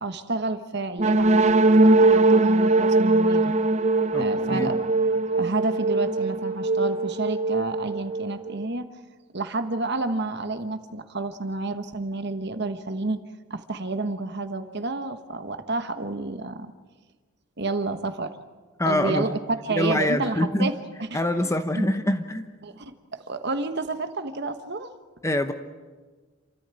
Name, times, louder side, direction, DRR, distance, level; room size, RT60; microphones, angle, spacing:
voice 1, 0.0-3.5 4.1-4.8 5.4-8.9 9.3-13.2 13.5-16.7 17.6-18.3 18.8-20.7 21.1-21.8 22.6-24.9, right 3 dB, 50° right, 9 dB, 1.3 m, -30 dB
sound 1, 1.0-8.7, right 2 dB, 30° right, 0.7 m, -21 dB
voice 2, 4.1-4.7 18.8-19.4 19.7-20.7 21.1-22.5 25.2-25.5, left 1 dB, 15° left, 9 dB, 0.9 m, -25 dB
28.0 x 14.0 x 9.0 m, 1.4 s
head